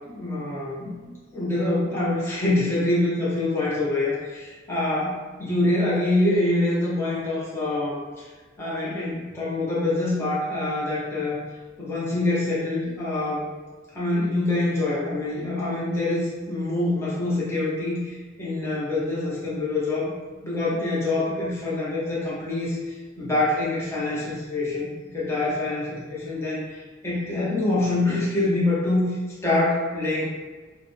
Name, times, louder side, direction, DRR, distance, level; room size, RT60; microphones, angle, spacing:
voice 1, 0.1-1.0 1.3-8.3 8.6-11.4 11.8-13.4 13.9-20.1 20.4-24.9 25.1-29.2 29.4-30.2, left 2 dB, 15° left, -9 dB, 0.9 m, -25 dB
4.7 x 2.2 x 3.2 m, 1.3 s
head